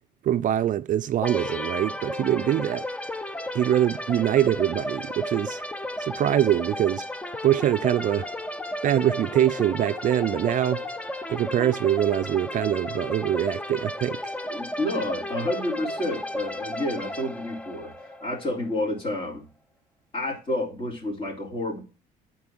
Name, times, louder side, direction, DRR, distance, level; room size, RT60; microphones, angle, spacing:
voice 1, 0.2-2.9 3.5-5.6 6.0-7.0 7.4-8.3 8.8-10.8 11.3-14.3, right 11 dB, 50° right, 0.4 m, -23 dB
sound 1, 1.2-18.8, left 1 dB, 5° left, 0.6 m, -34 dB
voice 2, 14.5-17.9 18.2-19.4 20.1-21.8, left 1 dB, 30° left, 3.7 m, -29 dB
8.4 x 4.6 x 6.1 m
cardioid pair, 110°, 17 cm